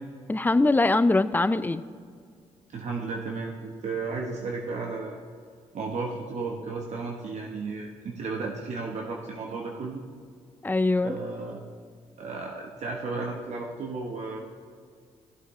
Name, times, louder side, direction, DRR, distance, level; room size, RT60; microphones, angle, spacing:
voice 1, 0.3-1.8 10.6-11.2, left 2 dB, 15° left, 13 dB, 0.5 m, -22 dB
voice 2, 2.7-5.2 5.7-10.0 11.0-11.6 12.2-14.4, right 4 dB, 60° right, 0 dB, 1.2 m, -34 dB
15.5 x 7.9 x 3.2 m, 2.1 s
supercardioid pair, 60°, 13 cm